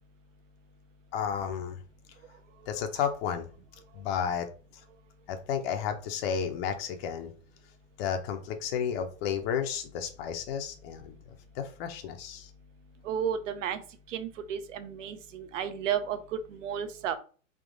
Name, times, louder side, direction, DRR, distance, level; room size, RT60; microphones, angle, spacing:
voice 1, 1.1-1.8 2.7-3.5 3.9-4.5 5.3-7.3 8.0-12.5, left 7 dB, 45° left, 6 dB, 0.7 m, -32 dB
voice 2, 13.0-13.8 14.1-17.1, right 8 dB, 70° right, 10 dB, 0.8 m, -33 dB
3.7 x 2.8 x 3.8 m, 0.39 s
hypercardioid pair, 115°, 40 cm